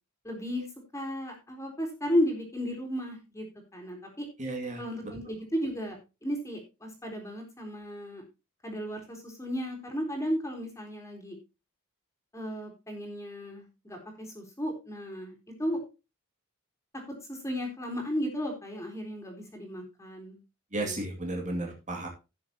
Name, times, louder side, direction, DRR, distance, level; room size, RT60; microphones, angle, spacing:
voice 1, 0.2-0.7 0.9-3.5 3.7-4.3 4.8-8.2 8.6-11.4 12.3-15.8 17.3-20.4 20.7-21.0, equal, 15° left, 2 dB, 3.9 m, -34 dB
voice 2, 4.4-4.8 20.7-22.1, right 2 dB, 35° right, 1 dB, 2.5 m, -33 dB
17.5 x 7.1 x 2.9 m, 0.28 s
head